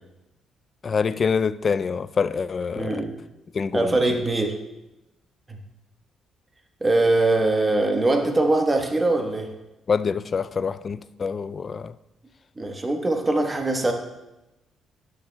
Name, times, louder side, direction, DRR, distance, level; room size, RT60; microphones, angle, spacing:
voice 1, 0.8-3.0 3.5-3.9 9.9-11.9, left 5 dB, 40° left, 0.3 m, -25 dB
voice 2, 2.7-3.1 3.7-4.6 5.5-5.6 6.8-9.5 12.6-13.9, right 2 dB, 20° right, 1.1 m, -22 dB
12.0 x 9.4 x 2.2 m
cardioid pair, 90°, 0 cm